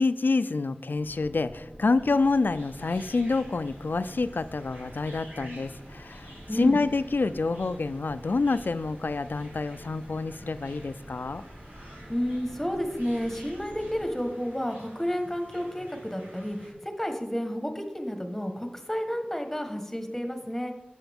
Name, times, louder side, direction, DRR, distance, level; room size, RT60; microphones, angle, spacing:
voice 1, 0.0-11.4, left 3 dB, 85° left, 14 dB, 0.4 m, -27 dB
sound 1, 1.0-14.1, equal, 55° right, 3.0 m, -47 dB
sound 2, 2.0-16.7, equal, 70° right, 2.7 m, -51 dB
voice 2, 12.1-20.7, equal, 10° left, 5 dB, 1.2 m, -31 dB
11.5 x 7.8 x 3.5 m, 0.98 s
wide cardioid pair, 55°, 3 cm